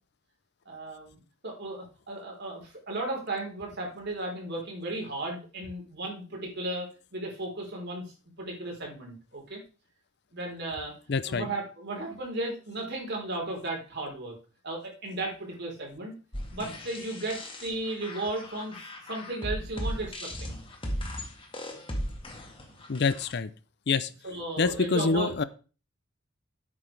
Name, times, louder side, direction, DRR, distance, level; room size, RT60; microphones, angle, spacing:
voice 1, 0.7-1.1 1.4-8.1 8.4-9.6 10.3-10.9 11.3-14.3 14.6-16.1 16.5-20.6 24.2-25.3, right 2 dB, 50° right, -1 dB, 4.2 m, -35 dB
voice 2, 11.1-11.5 22.9-23.5 23.9-24.1 24.6-25.4, left 4 dB, 50° left, 15 dB, 0.6 m, -26 dB
sound 1, 16.3-23.3, equal, 25° left, 1.8 m, -37 dB
11.5 x 8.6 x 3.4 m, 0.34 s
head